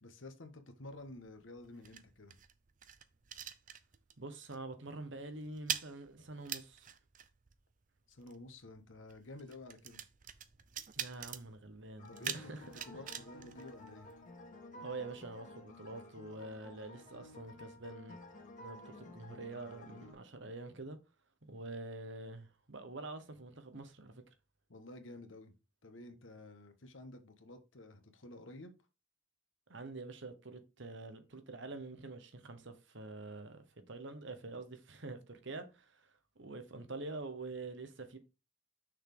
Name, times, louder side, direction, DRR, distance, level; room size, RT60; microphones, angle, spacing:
voice 1, 0.0-2.3 8.1-10.0 12.1-14.1 24.7-25.5 25.8-28.7, left 2 dB, 80° left, 1.3 m, -51 dB
sound 1, 0.9-4.2 4.5-4.8 5.0-14.4, right 9 dB, 45° right, 0.6 m, -45 dB
voice 2, 4.2-6.9 11.0-12.7 14.8-18.2 18.6-21.0 21.4-24.2 29.7-38.2, right 2 dB, 70° right, 1.2 m, -46 dB
sound 2, 12.0-20.1, left 1 dB, 40° left, 1.8 m, -53 dB
6.3 x 4.1 x 5.0 m
head